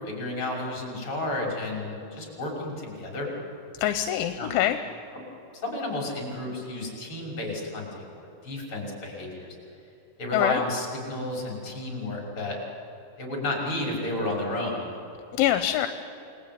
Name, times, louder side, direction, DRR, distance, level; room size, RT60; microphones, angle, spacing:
voice 1, 0.0-3.3 4.4-4.5 5.1-5.2 5.6-9.5 10.2-12.6 13.2-15.0, left 2 dB, 25° left, -1 dB, 6.6 m, -32 dB
voice 2, 3.8-4.8 10.3-10.6 15.3-15.9, left 12 dB, 80° left, 9 dB, 3.3 m, -24 dB
28.5 x 21.0 x 9.6 m, 2.9 s
omnidirectional pair, 5.4 m